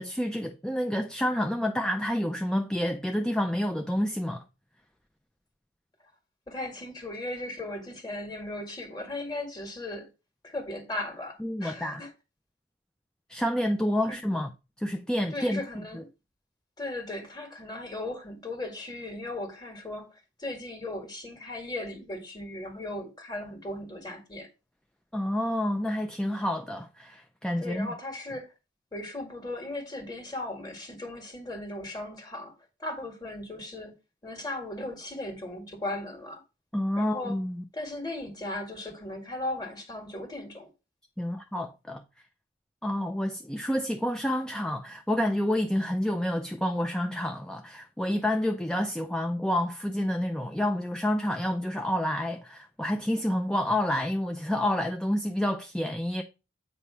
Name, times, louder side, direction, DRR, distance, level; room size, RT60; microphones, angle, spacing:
voice 1, 0.0-4.4 11.4-12.0 13.3-14.5 14.8-15.6 15.9-16.0 25.1-27.9 36.7-37.6 41.2-42.0 42.8-56.2, left 1 dB, 5° left, 0.4 m, -29 dB
voice 2, 6.5-10.1 10.4-12.1 14.1-14.2 15.3-16.1 16.8-24.5 27.6-28.5 28.9-32.5 32.8-33.9 34.2-36.4 37.0-37.3 37.7-40.7, left 2 dB, 20° left, 1.7 m, -37 dB
8.3 x 3.0 x 5.5 m
head